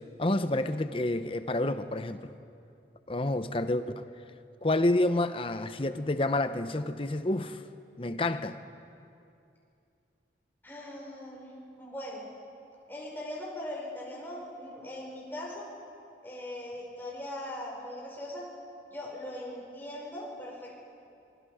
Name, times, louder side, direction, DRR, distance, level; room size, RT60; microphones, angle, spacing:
voice 1, 0.2-2.3 3.1-4.0 4.6-7.6 8.0-8.7, left 2 dB, 30° left, 10 dB, 0.8 m, -29 dB
voice 2, 10.6-11.5 11.8-12.3 12.9-15.7 16.2-18.4 18.9-20.8, left 1 dB, 10° left, -4 dB, 5.4 m, -40 dB
26.0 x 22.5 x 5.0 m, 2.5 s
head